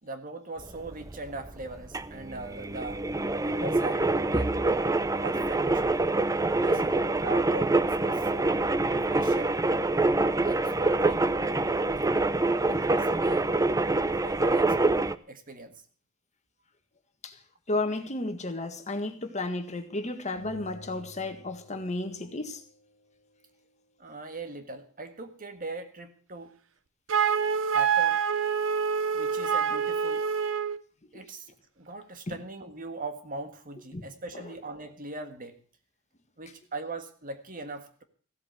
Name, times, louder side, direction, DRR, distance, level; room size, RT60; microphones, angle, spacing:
voice 1, 0.0-3.0 3.4-4.6 5.2-6.0 6.6-8.6 9.1-9.6 10.4-11.7 12.7-13.5 14.2-15.8 24.0-26.5 27.7-28.2 29.1-30.3 31.1-35.6 36.4-38.0, right 2 dB, 45° right, 1.7 m, -40 dB
sound 1, 0.6-15.2, right 2 dB, 15° right, 0.6 m, -26 dB
voice 2, 17.7-22.6 32.3-32.4 33.9-34.0 34.3-34.5, left 2 dB, 35° left, 1.7 m, -33 dB
sound 2, 20.4-23.0, left 2 dB, 50° left, 3.1 m, -50 dB
Wind instrument woodwind instrument, 27.1-30.8, right 7 dB, 75° right, 0.7 m, -26 dB
15.5 x 8.4 x 7.7 m
head